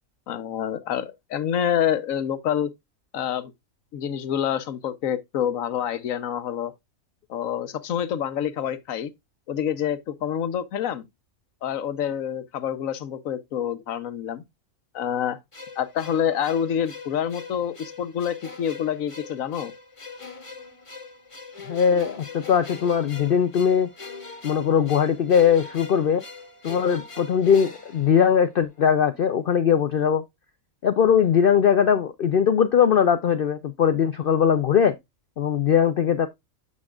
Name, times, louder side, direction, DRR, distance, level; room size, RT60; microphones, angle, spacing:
voice 1, 0.3-2.7 3.1-3.5 3.9-6.7 7.3-9.1 9.5-11.1 11.6-14.4 14.9-15.4 15.8-19.7, left 9 dB, 70° left, 1.2 m, -27 dB
sound 1, 15.5-28.8, left 4 dB, 25° left, 1.2 m, -42 dB
voice 2, 21.7-23.9 24.4-26.2 26.6-30.2 30.8-34.9 35.4-36.3, left 8 dB, 55° left, 0.6 m, -20 dB
8.3 x 6.0 x 2.3 m
omnidirectional pair, 1.5 m